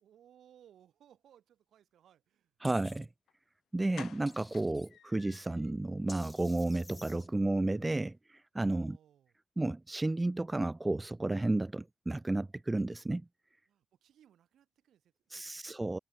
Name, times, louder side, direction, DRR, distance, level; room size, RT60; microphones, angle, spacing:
voice 1, 0.0-2.5 8.8-9.3 13.7-15.8, right 10 dB, 70° right, 7.2 m, -63 dB
sound 1, 2.6-3.1 4.3-4.9 6.1-7.3, left 1 dB, 10° left, 1.5 m, -52 dB
voice 2, 2.6-3.1 3.7-8.2 8.5-9.0 9.6-13.2 15.3-16.0, right 2 dB, 15° right, 0.4 m, -32 dB
sound 2, 3.3-3.4 3.9-5.7 6.1-6.2 6.5-6.7 7.0-7.1, left 10 dB, 65° left, 7.7 m, -52 dB
cardioid pair, 90°, 0 cm